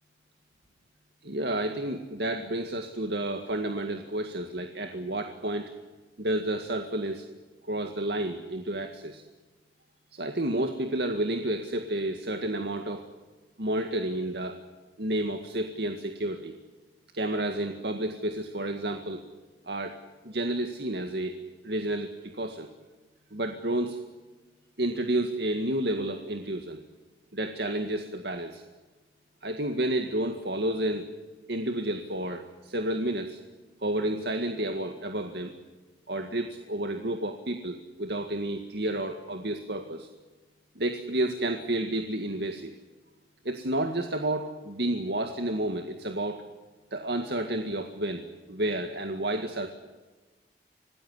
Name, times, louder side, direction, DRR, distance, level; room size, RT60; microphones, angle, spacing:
voice 1, 1.2-5.7 6.2-7.3 7.6-9.2 10.1-13.1 13.6-14.6 15.0-16.5 17.1-19.2 19.7-20.0 20.2-21.4 21.6-22.7 23.3-24.0 24.8-26.8 27.3-28.6 29.4-31.1 31.5-33.4 33.8-35.5 36.1-40.1 40.8-42.7 43.4-46.4 46.9-48.2 48.5-49.7, right 1 dB, 70° right, 6 dB, 2.0 m, -30 dB
26.5 x 19.0 x 9.8 m, 1.2 s
head